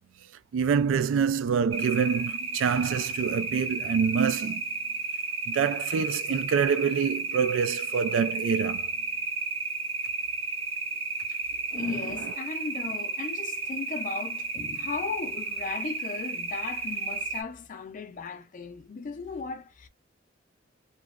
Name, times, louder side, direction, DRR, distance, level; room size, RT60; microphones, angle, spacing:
voice 1, 0.5-4.6 5.5-8.9 11.7-11.9, right 6 dB, 80° right, 0.3 m, -26 dB
sound 1, 1.7-17.4, right 4 dB, 30° right, 0.6 m, -33 dB
voice 2, 11.7-19.9, left 4 dB, 40° left, 0.4 m, -36 dB
2.9 x 2.2 x 2.3 m
head